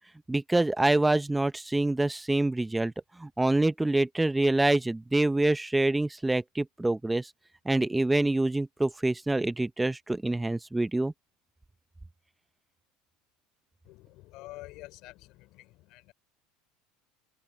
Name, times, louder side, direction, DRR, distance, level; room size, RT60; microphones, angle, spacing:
voice 1, 0.3-2.9 3.2-7.3 7.6-11.1, right 2 dB, 10° right, 0.7 m, -26 dB
voice 2, 13.8-16.1, left 19 dB, 60° left, 4.5 m, -48 dB
supercardioid pair, 110°, 0 cm